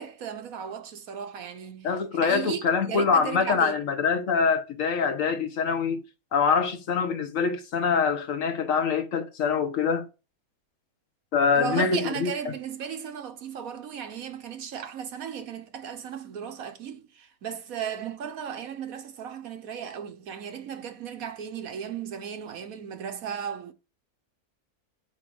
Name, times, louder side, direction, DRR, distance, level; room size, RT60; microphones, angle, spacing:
voice 1, 0.0-3.8 11.5-23.7, right 7 dB, 70° right, 1.5 m, -35 dB
voice 2, 1.8-6.0 6.3-10.1 11.3-12.5, left 6 dB, 60° left, 1.5 m, -25 dB
9.0 x 3.2 x 6.2 m
omnidirectional pair, 1.6 m